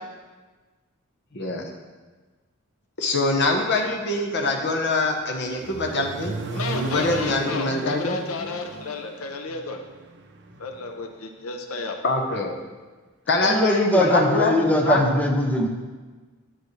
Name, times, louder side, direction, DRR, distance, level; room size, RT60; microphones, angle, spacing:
voice 1, 1.3-1.7 3.0-6.4 6.7-8.2 12.0-12.6 13.3-14.5 14.8-15.2, left 2 dB, 55° left, 2 dB, 1.0 m, -24 dB
Accelerating revving vroom, 5.0-11.0, right 2 dB, 55° right, 0.6 m, -35 dB
voice 2, 6.5-9.8 10.6-12.0 12.3-12.5, left 3 dB, 80° left, 5 dB, 0.7 m, -32 dB
voice 3, 13.4-15.7, left 1 dB, 5° left, 1 dB, 0.7 m, -21 dB
10.5 x 6.2 x 3.2 m, 1.3 s
head